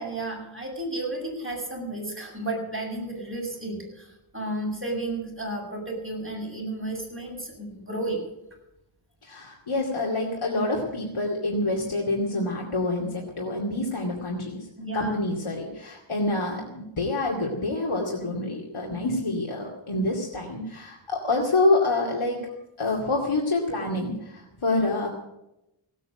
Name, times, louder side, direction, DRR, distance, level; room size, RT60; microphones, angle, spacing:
voice 1, 0.0-8.3 14.8-15.2, right 2 dB, 25° right, -1 dB, 7.1 m, -32 dB
voice 2, 9.2-14.7 14.9-22.4 22.8-25.1, left 2 dB, 75° left, -1 dB, 2.6 m, -27 dB
17.0 x 9.2 x 8.9 m, 0.88 s
wide cardioid pair, 60°, 50 cm